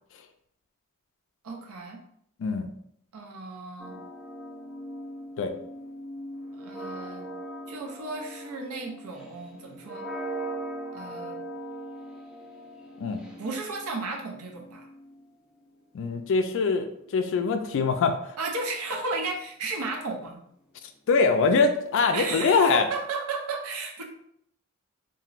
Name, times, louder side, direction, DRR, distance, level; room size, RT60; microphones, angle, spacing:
voice 1, 1.4-2.0 3.1-4.0 6.5-7.3 7.7-10.1 10.9-11.4 13.4-14.9 18.4-20.4 22.1-24.0, right 3 dB, 75° right, 2 dB, 0.6 m, -34 dB
sound 1, 3.8-15.8 16.7-18.0, right 1 dB, 5° right, 0.5 m, -40 dB
voice 2, 15.9-18.2 21.1-22.9, left 4 dB, 60° left, 7 dB, 0.3 m, -23 dB
2.9 x 2.6 x 2.4 m, 0.71 s
head